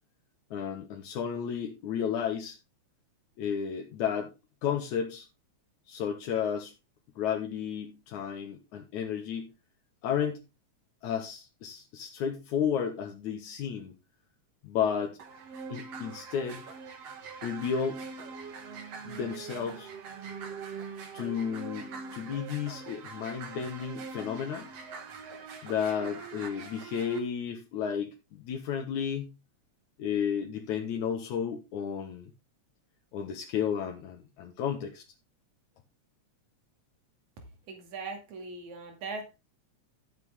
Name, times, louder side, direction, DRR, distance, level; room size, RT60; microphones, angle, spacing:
voice 1, 0.5-2.6 3.4-4.3 4.6-5.3 5.9-6.7 7.2-9.5 10.0-10.4 11.0-13.9 14.6-15.2 15.7-16.6 17.4-18.0 19.1-19.9 21.1-24.7 25.6-29.3 30.0-32.3 33.1-35.0, left 8 dB, 80° left, 2.8 m, -32 dB
sound 1, 15.2-27.2, right 5 dB, 60° right, 3.0 m, -43 dB
voice 2, 37.7-39.3, right 3 dB, 75° right, 3.7 m, -40 dB
13.5 x 8.2 x 3.6 m
omnidirectional pair, 3.4 m